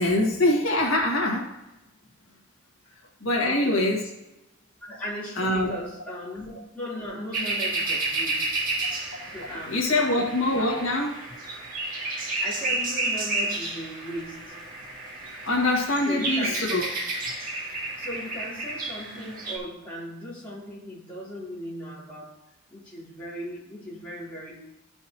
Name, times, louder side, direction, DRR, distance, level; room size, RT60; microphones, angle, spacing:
voice 1, 0.0-1.4 3.2-4.0 5.4-5.7 9.7-11.2 15.4-16.8, left 1 dB, 85° left, -2 dB, 1.9 m, -23 dB
voice 2, 3.4-3.9 4.8-8.7 9.3-10.3 12.4-14.6 16.0-16.6 18.0-22.4 22.7-24.6, equal, 5° left, -8 dB, 3.4 m, -37 dB
sound 1, 7.3-19.6, right 2 dB, 45° right, 2.0 m, -31 dB
14.0 x 5.5 x 3.0 m, 0.95 s
head